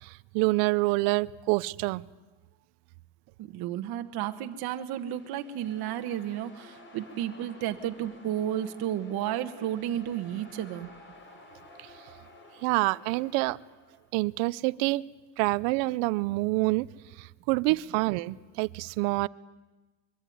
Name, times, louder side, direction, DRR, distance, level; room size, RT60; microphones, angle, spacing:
voice 1, 0.0-2.0 11.8-11.9 12.6-13.6 14.1-15.0 15.4-16.9 17.2-19.3, right 22 dB, 85° right, 19 dB, 0.8 m, -27 dB
voice 2, 3.4-10.9, right 11 dB, 55° right, 6 dB, 1.5 m, -32 dB
sound 1, 4.3-14.1, left 2 dB, 25° left, 4.0 m, -53 dB
24.0 x 23.0 x 9.4 m, 1.2 s
cardioid pair, 150°, 43 cm